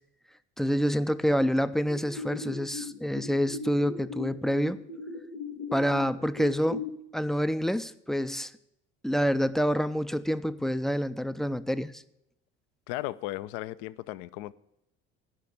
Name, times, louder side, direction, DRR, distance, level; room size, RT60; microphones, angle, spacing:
voice 1, 0.6-4.8 5.7-6.8 7.1-8.5 9.0-12.0, equal, ahead, 0.3 m, -27 dB
sound 1, 1.9-6.9, left 4 dB, 90° left, 0.9 m, -39 dB
voice 2, 12.9-14.5, left 16 dB, 65° left, 0.5 m, -36 dB
10.0 x 5.7 x 8.5 m
hypercardioid pair, 65°, 35 cm